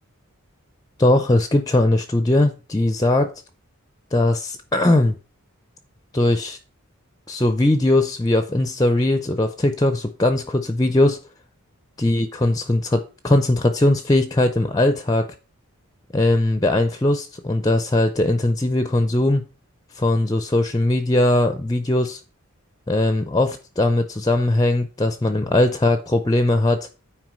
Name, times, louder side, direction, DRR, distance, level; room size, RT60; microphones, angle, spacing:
voice 1, 1.0-3.3 4.1-5.2 6.1-6.6 7.3-11.2 12.0-15.3 16.1-19.4 19.9-22.2 22.9-26.9, left 1 dB, 15° left, 9 dB, 0.6 m, -19 dB
9.4 x 4.7 x 6.2 m, 0.34 s
head